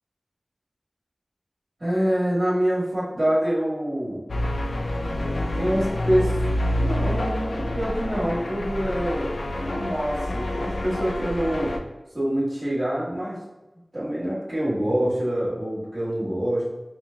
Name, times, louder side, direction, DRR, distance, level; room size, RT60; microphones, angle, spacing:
voice 1, 1.8-4.2 5.1-6.4 6.8-11.8 12.1-13.4 13.9-16.7, equal, 45° right, -8 dB, 1.3 m, -26 dB
sound 1, 4.3-11.8, left 1 dB, 85° left, 0.3 m, -27 dB
3.1 x 3.0 x 3.3 m, 1.1 s
wide cardioid pair, 45°, 0 cm